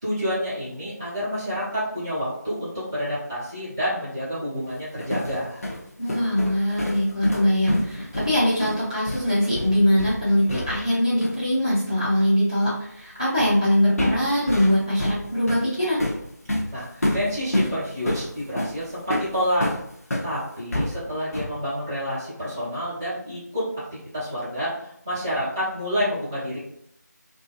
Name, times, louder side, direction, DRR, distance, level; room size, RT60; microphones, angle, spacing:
voice 1, 0.0-5.6 16.7-19.7 20.2-23.6 24.1-26.6, equal, 10° right, -13 dB, 0.8 m, -28 dB
sound 1, 4.7-11.0 11.2-11.4 13.4-13.6 14.0-20.3 20.7-21.6, left 1 dB, 55° left, 0.7 m, -28 dB
voice 2, 6.0-16.0, left 1 dB, 20° left, -12 dB, 0.4 m, -22 dB
2.5 x 2.5 x 2.2 m, 0.75 s
figure-of-eight pair, 165°, 10 cm